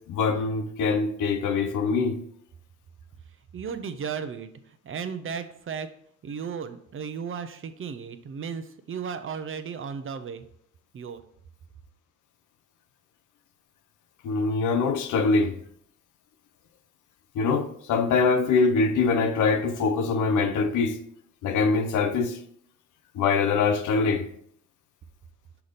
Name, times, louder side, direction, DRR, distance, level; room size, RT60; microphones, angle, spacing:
voice 1, 0.1-2.2 14.2-15.5 17.4-21.0 21.4-22.4 23.1-24.3, left 4 dB, 80° left, 0.8 m, -23 dB
voice 2, 3.5-5.9 6.2-10.5 10.9-11.2, right 6 dB, 45° right, 0.7 m, -35 dB
5.8 x 5.0 x 4.1 m
cardioid pair, 90°, 30 cm